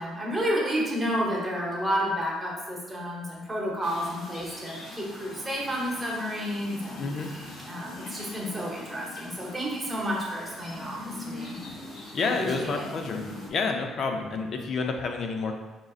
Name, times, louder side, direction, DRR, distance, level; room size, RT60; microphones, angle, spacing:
voice 1, 0.0-11.6 12.2-12.9, equal, 10° right, -4 dB, 0.9 m, -31 dB
sound 1, 3.8-13.5, left 2 dB, 70° left, 1.1 m, -42 dB
voice 2, 7.0-7.3 12.1-13.2 13.5-15.5, left 4 dB, 40° left, 4 dB, 0.4 m, -29 dB
5.0 x 3.8 x 2.4 m, 1.3 s
cardioid pair, 180°, 0 cm